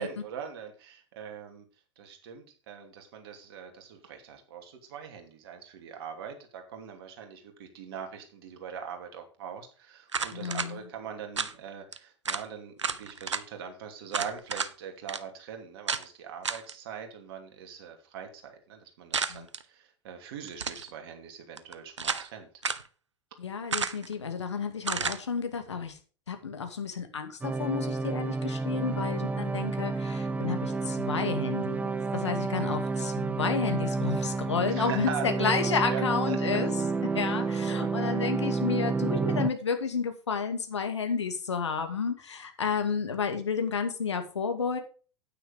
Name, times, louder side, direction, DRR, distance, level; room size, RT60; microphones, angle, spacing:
voice 1, 0.0-1.6 2.0-22.5 28.7-29.0 34.7-36.6 37.7-37.9, right 7 dB, 55° right, 5 dB, 2.8 m, -42 dB
sound 1, 10.1-10.7 11.4-11.5 11.9-12.0 12.3-12.5 12.8-13.4 14.1-14.7 15.1-15.2 15.9-16.1 16.4-16.7 19.1-19.6 20.5-20.9 21.6-22.3 22.6-22.9 23.7-24.1 24.8-25.2, right 5 dB, 80° right, 0.8 m, -31 dB
voice 2, 10.3-10.9 19.3-19.5 23.4-26.0 26.3-36.8 37.1-44.8, left 5 dB, 70° left, 7 dB, 2.1 m, -31 dB
sound 2, 27.4-39.5, right 4 dB, 10° right, 0.7 m, -30 dB
9.5 x 9.3 x 3.8 m, 0.37 s
figure-of-eight pair, 90°, 15 cm